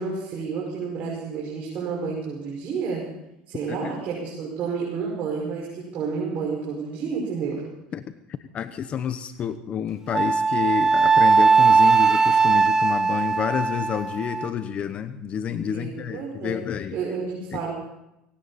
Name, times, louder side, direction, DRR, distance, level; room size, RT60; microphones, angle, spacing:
voice 1, 0.0-3.1 3.5-7.6 15.7-16.6 16.9-17.7, right 5 dB, 50° right, -3 dB, 5.6 m, -30 dB
voice 2, 8.5-17.0 17.5-17.6, left 8 dB, 40° left, 11 dB, 0.9 m, -29 dB
Wind instrument woodwind instrument, 10.1-14.5, right 4 dB, 15° right, 0.9 m, -19 dB
19.5 x 17.0 x 4.2 m, 0.87 s
supercardioid pair, 115°, 3 cm